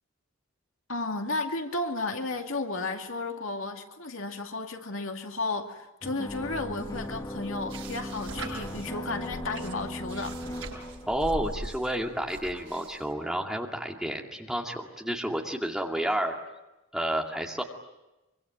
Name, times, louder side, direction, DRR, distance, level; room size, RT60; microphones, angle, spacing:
voice 1, 0.9-10.4, left 3 dB, 65° left, 4 dB, 2.3 m, -33 dB
sound 1, 6.0-11.7, equal, 15° left, 1.0 m, -38 dB
sound 2, 6.3-13.1, right 2 dB, 80° right, 6.9 m, -42 dB
voice 2, 11.1-16.3 16.9-17.6, right 1 dB, ahead, 1 dB, 2.2 m, -30 dB
25.0 x 24.0 x 9.2 m, 1.0 s
head